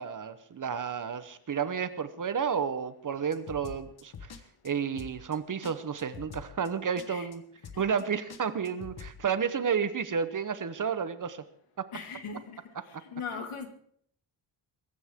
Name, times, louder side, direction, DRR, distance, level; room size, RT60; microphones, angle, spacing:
voice 1, 0.0-4.3 4.6-7.4 7.8-11.4 11.8-11.9 12.9-13.0, right 6 dB, 40° right, 13 dB, 0.9 m, -31 dB
sound 1, 3.3-4.4 4.6-4.7 5.0-5.4 5.6-5.7 6.0-6.7 7.0-7.4 7.6-8.0 8.3-9.1, left 6 dB, 50° left, 1.3 m, -45 dB
voice 2, 7.7-8.0 11.9-12.6 13.1-13.7, left 6 dB, 85° left, 6 dB, 2.1 m, -39 dB
23.0 x 13.5 x 3.6 m, 0.63 s
wide cardioid pair, 165°, 49 cm